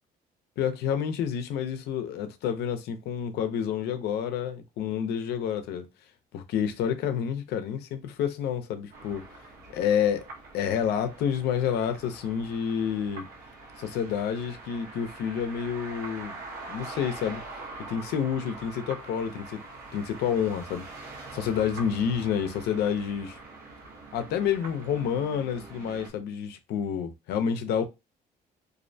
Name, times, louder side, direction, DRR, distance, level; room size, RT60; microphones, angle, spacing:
voice 1, 0.6-5.9 6.3-9.2 9.7-10.2 10.5-13.3 13.8-16.4 16.7-17.4 17.9-19.6 19.9-20.9 21.3-23.4 24.1-27.9, left 8 dB, 75° left, 0.5 m, -29 dB
sound 1, 8.9-26.1, right 3 dB, 70° right, 0.9 m, -44 dB
2.5 x 2.1 x 2.6 m
cardioid pair, 110°, 17 cm